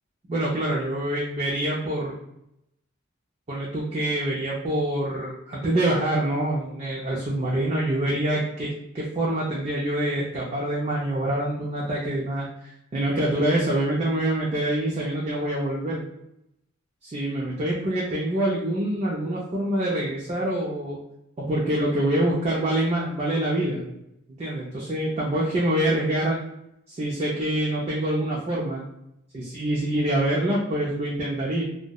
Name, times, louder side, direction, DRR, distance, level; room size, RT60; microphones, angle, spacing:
voice 1, 0.3-2.1 3.5-16.0 17.0-21.0 21.4-23.8 24.4-26.4 26.9-28.8 29.3-31.6, right 1 dB, 30° right, -4 dB, 0.4 m, -25 dB
2.7 x 2.0 x 2.2 m, 0.82 s
head